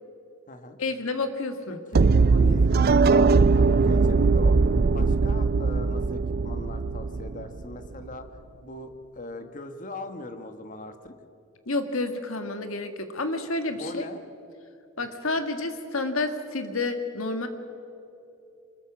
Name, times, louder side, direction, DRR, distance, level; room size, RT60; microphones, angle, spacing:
voice 1, 0.8-1.8 11.6-14.1 15.0-17.5, left 2 dB, 70° left, 7 dB, 1.8 m, -29 dB
voice 2, 1.7-11.1 13.7-14.2 15.0-15.1, left 2 dB, 40° left, 8 dB, 1.4 m, -40 dB
sound 1, 1.9-7.9, right 4 dB, 45° right, 0.5 m, -20 dB
25.5 x 21.0 x 6.2 m, 2.8 s
head